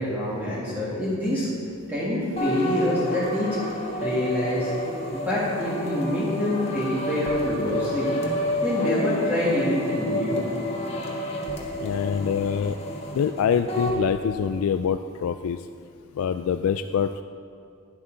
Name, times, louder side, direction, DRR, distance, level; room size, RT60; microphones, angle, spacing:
voice 1, 0.0-1.5 1.9-3.6 4.0-4.7 5.1-8.2 8.6-10.4, left 1 dB, 10° right, -9 dB, 1.8 m, -26 dB
sound 1, 2.4-14.0, left 1 dB, 30° left, 1.3 m, -29 dB
voice 2, 11.8-12.8 13.1-15.6 16.2-17.2, left 7 dB, 70° left, 9 dB, 0.3 m, -25 dB
11.0 x 11.0 x 3.9 m, 2.4 s
head